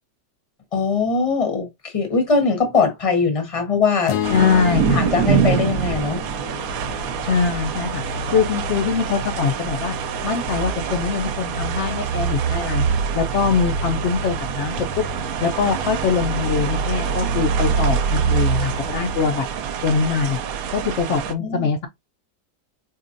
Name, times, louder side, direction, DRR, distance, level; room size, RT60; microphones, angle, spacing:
voice 1, 0.7-4.2 4.9-6.2 21.4-21.7, left 4 dB, 25° left, 0.8 m, -21 dB
sound 1, 4.1-8.3, left 11 dB, 60° left, 0.9 m, -31 dB
sound 2, 4.2-21.3, right 6 dB, 70° right, 0.9 m, -24 dB
voice 2, 4.3-5.0 7.2-8.0 8.3-10.0 10.2-12.9 13.1-15.0 15.4-19.5 19.8-20.4 20.7-21.9, left 5 dB, 85° left, 0.6 m, -22 dB
4.0 x 2.8 x 2.5 m
omnidirectional pair, 1.8 m